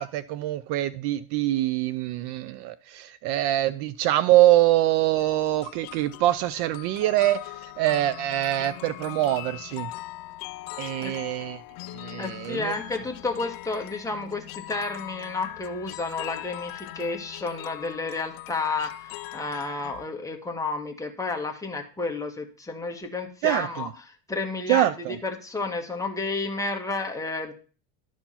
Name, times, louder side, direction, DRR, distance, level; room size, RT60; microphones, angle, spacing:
voice 1, 0.0-7.4 7.8-9.9 10.8-11.6 11.9-12.7 23.4-23.9 24.7-25.2, right 15 dB, 55° right, 0.5 m, -24 dB
sound 1, 5.1-20.1, left 17 dB, 45° left, 0.5 m, -40 dB
voice 2, 12.2-23.9 24.3-27.5, left 3 dB, 5° left, 1.3 m, -31 dB
11.5 x 4.7 x 5.6 m
cardioid pair, 150°, 47 cm